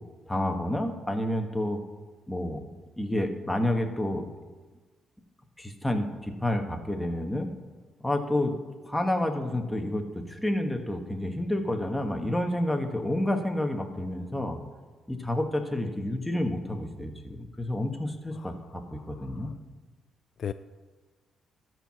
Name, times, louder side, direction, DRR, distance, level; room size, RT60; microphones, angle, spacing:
voice 1, 0.3-1.8 2.3-2.6 3.0-4.3 5.6-7.5 8.0-8.5 8.9-14.6 15.1-19.5, left 1 dB, 5° left, 4 dB, 1.3 m, -29 dB
voice 2, 19.2-19.5 20.4-20.5, left 8 dB, 55° left, 11 dB, 0.3 m, -37 dB
13.0 x 4.6 x 6.2 m, 1.3 s
cardioid pair, 90°, 0 cm